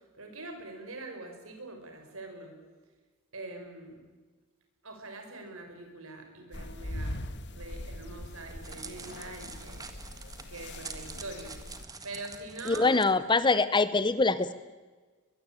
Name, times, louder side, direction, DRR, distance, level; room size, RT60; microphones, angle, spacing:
voice 1, 0.2-2.5 3.3-4.0 4.8-7.2 7.5-9.8 10.5-11.6 12.0-12.9, right 2 dB, 65° right, 5 dB, 5.5 m, -43 dB
sound 1, 6.5-11.8, left 1 dB, 50° left, 1.4 m, -41 dB
Crackle, 8.1-13.0, right 4 dB, 15° right, 1.7 m, -46 dB
voice 2, 12.7-14.5, left 3 dB, 20° left, 15 dB, 0.8 m, -24 dB
22.0 x 21.5 x 8.9 m, 1.3 s
head